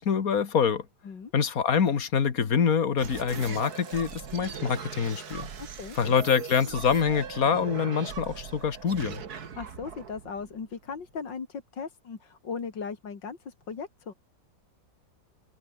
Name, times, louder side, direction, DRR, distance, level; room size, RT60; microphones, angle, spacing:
voice 1, 0.0-0.9 1.3-5.5 6.0-9.2, left 7 dB, 50° left, 2.1 m, -25 dB
sound 1, 3.0-11.2, right 7 dB, 55° right, 2.1 m, -40 dB
voice 2, 5.6-6.0 9.4-14.1, left 5 dB, 75° left, 3.1 m, -38 dB
omnidirectional pair, 2.0 m